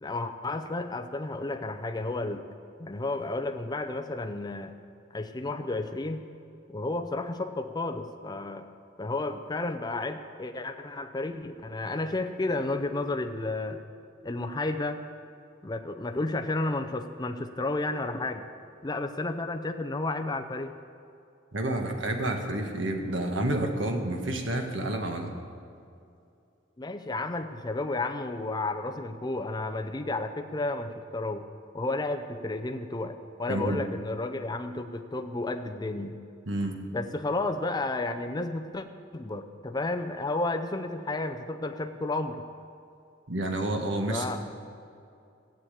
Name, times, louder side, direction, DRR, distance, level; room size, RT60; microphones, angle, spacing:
voice 1, 0.0-2.5 2.8-4.8 5.1-6.2 6.7-8.7 9.0-13.8 14.2-15.0 15.6-18.5 18.8-20.7 26.8-31.5 31.7-36.1 36.9-38.8 39.1-42.4 44.1-44.4, left 2 dB, 20° left, 6 dB, 0.5 m, -32 dB
voice 2, 21.5-25.3 33.5-33.8 36.5-36.8 43.3-44.3, right 1 dB, 75° right, 3 dB, 1.7 m, -29 dB
15.5 x 7.2 x 8.4 m, 2.5 s
head